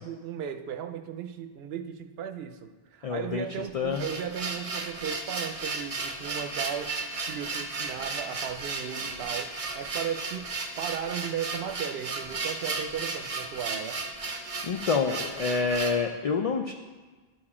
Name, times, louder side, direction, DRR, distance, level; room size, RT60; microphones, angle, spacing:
voice 1, 0.0-14.0, right 8 dB, 75° right, 8 dB, 0.8 m, -36 dB
voice 2, 3.0-3.5 3.7-4.0 14.6-16.7, left 5 dB, 50° left, 4 dB, 0.4 m, -27 dB
sound 1, 3.7-16.0, right 3 dB, 40° right, 0.7 m, -34 dB
12.0 x 4.8 x 4.2 m, 1.3 s
omnidirectional pair, 1.0 m